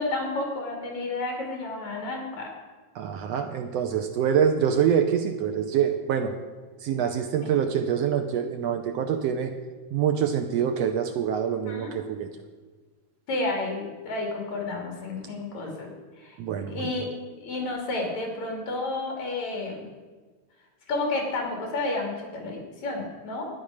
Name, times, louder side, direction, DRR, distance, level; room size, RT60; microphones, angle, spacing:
voice 1, 0.0-2.5 6.9-7.0 7.4-7.5 11.6-11.9 13.3-15.9 16.2-17.1 17.4-19.9 20.9-23.5, left 2 dB, 65° left, 0 dB, 4.0 m, -31 dB
voice 2, 2.9-6.4 6.8-9.5 9.9-12.3 16.4-16.9, right 8 dB, 75° right, 6 dB, 1.6 m, -25 dB
12.0 x 10.0 x 6.4 m, 1.4 s
omnidirectional pair, 3.4 m